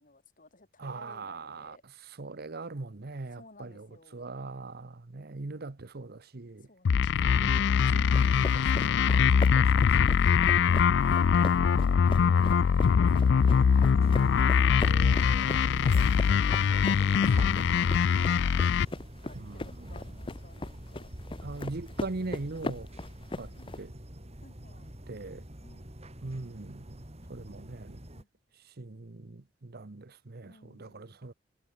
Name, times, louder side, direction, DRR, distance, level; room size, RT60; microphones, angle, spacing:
voice 1, 0.0-1.8 3.3-4.4 5.1-5.7 6.6-7.9 19.2-21.1 23.6-23.8 24.4-24.9 25.6-26.0 28.1-28.3 30.4-31.2, left 2 dB, 45° left, 4.5 m, -59 dB
voice 2, 0.8-1.8 2.2-3.9 4.1-6.7 7.4-10.2 12.0-12.7 14.6-17.9 19.3-19.9 21.4-22.9 23.3-23.9 25.1-25.4 26.2-27.0 27.3-28.0 28.8-31.3, right 3 dB, 55° right, 0.9 m, -41 dB
sound 1, 6.9-18.9, left 6 dB, 65° left, 0.4 m, -23 dB
sound 2, 8.1-23.8, left 2 dB, 25° left, 0.7 m, -40 dB
sound 3, 14.0-28.2, right 1 dB, 35° right, 3.4 m, -46 dB
head